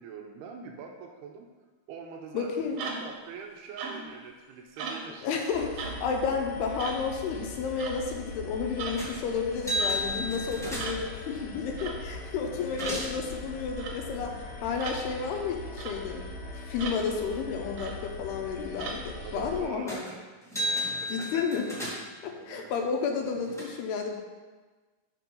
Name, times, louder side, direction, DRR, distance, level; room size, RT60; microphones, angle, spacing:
voice 1, 0.0-1.5 1.9-2.5 3.0-5.3 10.6-10.7 19.2-20.2 20.6-21.4 22.4-22.7, right 6 dB, 90° right, 2 dB, 2.7 m, -44 dB
voice 2, 2.3-2.8 5.2-16.2 16.7-20.0 21.1-21.7 22.2-24.1, left 5 dB, 80° left, 2 dB, 2.9 m, -31 dB
sound 1, 2.8-3.2 3.8-4.2 4.8-5.1 5.8-6.0 6.8-7.1 7.8-8.0 8.8-9.0 9.8-10.0 10.8-11.0 11.8-12.0 12.8-13.0 13.8-14.0 14.8-15.0 15.8-16.0 16.8-17.0 17.8-18.0 18.8-19.0, right 4 dB, 70° right, 2.4 m, -37 dB
sound 2, 5.5-19.6, left 2 dB, 55° left, 1.7 m, -41 dB
sound 3, 9.0-9.2 9.5-11.1 12.1-12.2 12.5-13.2 19.9-20.1 20.4-22.2 23.0-23.6, equal, 5° left, 0.6 m, -33 dB
7.2 x 6.0 x 5.4 m, 1.3 s
omnidirectional pair, 4.6 m